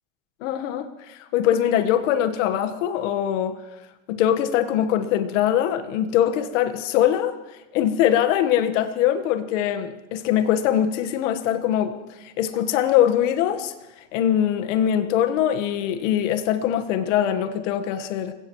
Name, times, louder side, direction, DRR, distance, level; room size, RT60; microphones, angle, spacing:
voice 1, 0.4-3.6 4.1-7.4 7.7-11.9 12.2-13.7 14.1-18.3, left 10 dB, 65° left, 1.5 m, -22 dB
26.5 x 17.0 x 3.1 m
supercardioid pair, 120°, 40 cm